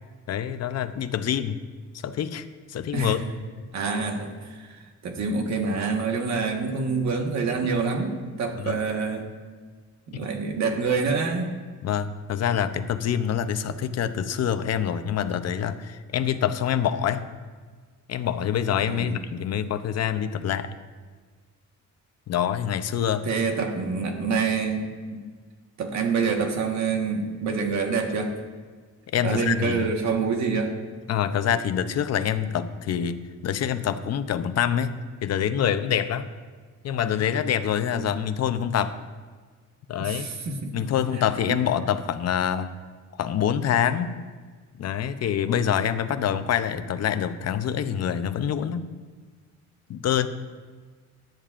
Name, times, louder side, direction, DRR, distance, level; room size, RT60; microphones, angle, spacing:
voice 1, 0.3-1.6 2.0-3.2 7.6-7.7 8.5-8.8 11.8-17.3 18.1-20.7 22.3-23.3 29.1-29.9 31.1-36.3 36.8-39.0 39.9-40.3 40.7-42.7 43.2-44.2 44.8-48.9 49.9-50.3, left 9 dB, 60° left, 11 dB, 0.6 m, -26 dB
voice 2, 2.9-3.4 3.7-9.3 10.1-11.5 18.9-19.2 23.3-25.2 25.8-28.3 29.2-30.7 37.9-38.2 40.0-40.8 41.5-41.6, right 4 dB, 70° right, 3 dB, 1.4 m, -27 dB
17.0 x 10.5 x 2.5 m, 1.5 s
wide cardioid pair, 160°, 29 cm